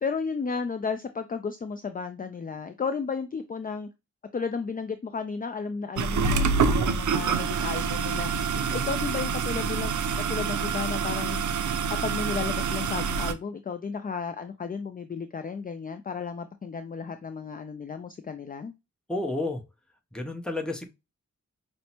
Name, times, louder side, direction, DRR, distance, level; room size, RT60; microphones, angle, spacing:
voice 1, 0.0-3.9 4.3-8.3 8.7-11.4 11.9-18.7, left 5 dB, 30° left, 0.4 m, -33 dB
sound 1, 6.0-13.3, right 5 dB, 90° right, 0.5 m, -27 dB
voice 2, 8.5-8.9 19.1-19.6 20.1-20.9, left 2 dB, 5° left, 0.8 m, -31 dB
5.6 x 2.1 x 2.8 m
wide cardioid pair, 80°, 29 cm